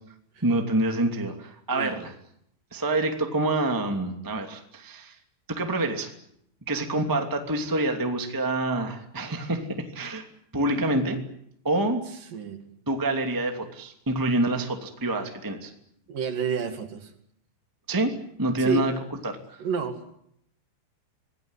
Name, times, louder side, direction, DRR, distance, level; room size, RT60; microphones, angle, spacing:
voice 1, 0.4-2.1 2.7-5.1 5.5-6.1 6.7-9.6 9.9-10.2 10.5-11.2 11.6-12.0 12.8-15.7 17.9-18.1 18.4-18.9 19.2-19.6, right 2 dB, 10° right, 4 dB, 1.4 m, -26 dB
voice 2, 16.1-17.1 18.6-18.8 19.6-20.0, right 6 dB, 55° right, 7 dB, 3.4 m, -29 dB
27.0 x 19.0 x 9.8 m, 0.74 s
omnidirectional pair, 5.3 m